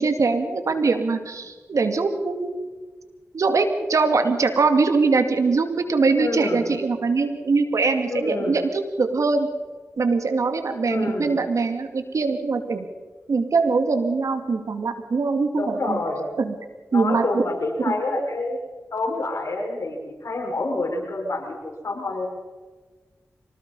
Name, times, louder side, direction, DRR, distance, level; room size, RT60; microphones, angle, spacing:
voice 1, 0.0-2.7 3.3-9.5 10.0-12.9 13.3-16.0 16.4-16.5 16.9-17.4 17.8-17.9, right 4 dB, 75° right, 7 dB, 2.4 m, -22 dB
voice 2, 6.2-6.6 8.1-8.6 10.9-11.4 15.6-16.2 16.9-18.6 18.9-21.6 21.8-22.3, left 2 dB, 65° left, 0 dB, 6.2 m, -27 dB
26.0 x 19.0 x 5.5 m, 1.3 s
cardioid pair, 45°, 6 cm